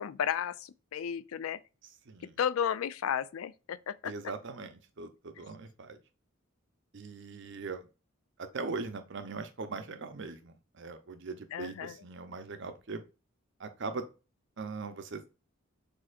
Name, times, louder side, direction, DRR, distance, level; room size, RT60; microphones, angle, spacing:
voice 1, 0.0-1.6 2.4-4.1 11.5-12.0, left 8 dB, 85° left, 0.4 m, -33 dB
voice 2, 2.1-2.4 4.0-6.0 6.9-7.9 8.4-13.0 13.6-14.0 14.6-15.3, right 4 dB, 60° right, 0.7 m, -40 dB
6.4 x 2.8 x 2.5 m
head